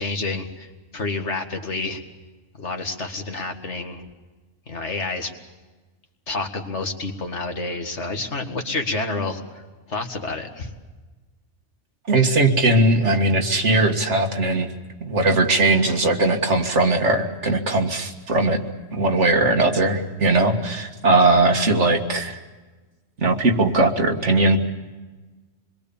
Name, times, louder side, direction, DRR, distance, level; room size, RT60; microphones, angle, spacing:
voice 1, 0.0-2.0 2.6-4.1 4.7-5.3 6.3-10.7, left 3 dB, 70° left, 4 dB, 2.2 m, -29 dB
voice 2, 12.1-14.7 15.0-18.6 18.9-22.4 23.2-24.6, right 2 dB, 80° right, 4 dB, 2.2 m, -19 dB
27.0 x 22.0 x 7.1 m, 1.2 s
omnidirectional pair, 1.2 m